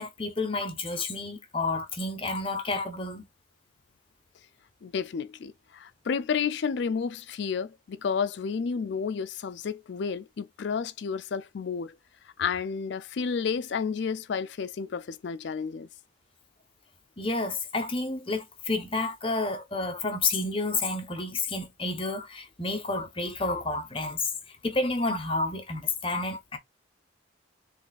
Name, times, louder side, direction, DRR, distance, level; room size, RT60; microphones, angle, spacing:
voice 1, 0.0-3.3 17.2-26.6, left 3 dB, 25° left, 0.7 m, -30 dB
voice 2, 4.8-12.0 12.4-15.9, left 6 dB, 60° left, 0.4 m, -31 dB
3.3 x 2.3 x 4.0 m
head